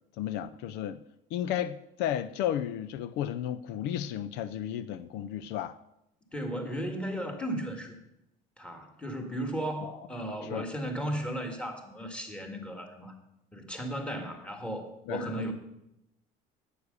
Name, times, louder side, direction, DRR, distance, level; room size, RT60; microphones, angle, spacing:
voice 1, 0.2-1.0 1.3-5.8 9.8-9.9 10.5-10.6 15.1-15.5, left 10 dB, 70° left, 0.6 m, -33 dB
voice 2, 6.3-8.0 8.6-13.1 13.5-15.5, right 1 dB, 5° left, 1.9 m, -35 dB
9.6 x 8.5 x 6.7 m
cardioid pair, 135°, 18 cm